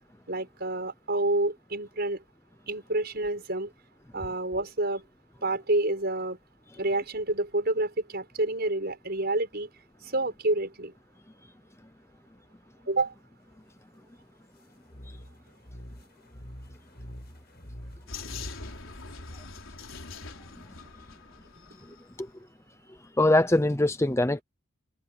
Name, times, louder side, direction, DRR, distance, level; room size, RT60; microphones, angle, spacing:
voice 1, 0.3-2.2 2.7-3.7 4.1-5.0 5.4-6.4 6.8-9.7 10.0-10.9 12.9-13.1, right 2 dB, 50° right, 7.0 m, -28 dB
sound 1, 14.9-18.8, equal, 50° left, 7.5 m, -45 dB
Vehicle, 18.1-22.0, left 4 dB, 80° left, 3.9 m, -43 dB
voice 2, 23.2-24.4, left 1 dB, 15° left, 0.7 m, -22 dB
head